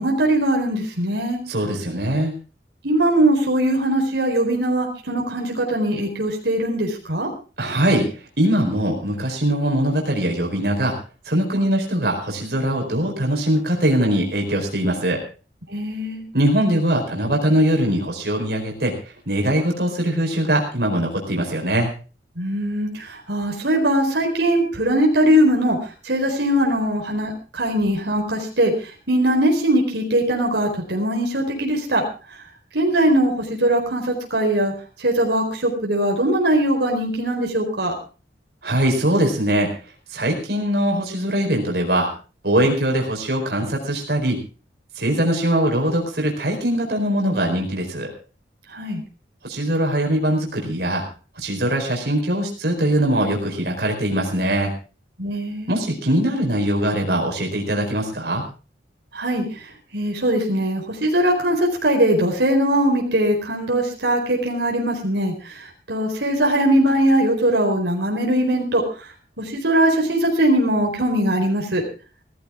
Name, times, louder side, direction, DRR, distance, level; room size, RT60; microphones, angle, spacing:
voice 1, 0.0-1.4 2.8-7.3 15.7-16.2 22.4-25.8 26.0-28.7 29.1-32.0 32.7-34.7 35.0-37.9 48.7-49.0 55.2-55.8 59.1-59.4 59.9-68.8 69.4-71.8, right 1 dB, 80° right, 1 dB, 4.5 m, -20 dB
voice 2, 1.5-2.3 7.6-10.9 11.2-15.2 16.3-18.9 19.3-21.9 38.6-39.7 40.1-42.1 42.4-44.4 45.0-48.1 49.4-51.0 51.4-54.7 55.7-58.4, right 1 dB, 60° right, 1 dB, 4.6 m, -21 dB
18.5 x 14.5 x 3.7 m, 0.35 s
head